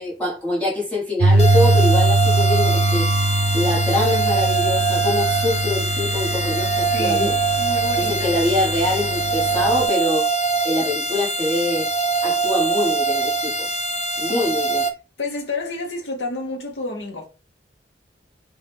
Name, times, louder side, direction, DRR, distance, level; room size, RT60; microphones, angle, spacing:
voice 1, 0.0-3.1 3.5-7.4 8.0-10.3 10.6-11.9 12.2-13.7 14.2-14.8, left 1 dB, 10° left, 1.4 m, -24 dB
sound 1, 1.2-9.9, right 1 dB, 80° right, 0.5 m, -21 dB
sound 2, 1.4-14.9, right 4 dB, 35° left, 0.5 m, -23 dB
voice 2, 6.9-8.3 14.2-14.6 15.2-17.3, left 2 dB, 85° left, 0.9 m, -30 dB
4.0 x 2.4 x 3.5 m
head